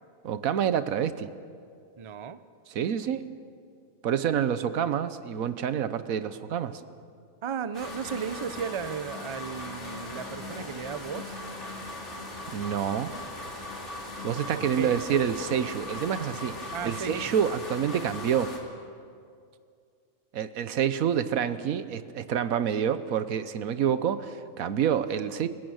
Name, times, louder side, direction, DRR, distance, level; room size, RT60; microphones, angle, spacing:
voice 1, 0.2-1.3 2.7-3.2 4.0-6.8 12.5-13.1 14.2-18.5 20.3-25.5, right 8 dB, 90° right, 13 dB, 1.3 m, -28 dB
voice 2, 2.0-2.4 7.4-11.3 14.5-15.0 16.7-17.4, right 7 dB, 35° right, 13 dB, 0.5 m, -35 dB
sound 1, 7.7-18.6, left 2 dB, 55° left, 3.3 m, -39 dB
29.0 x 16.0 x 6.4 m, 2.3 s
omnidirectional pair, 1.4 m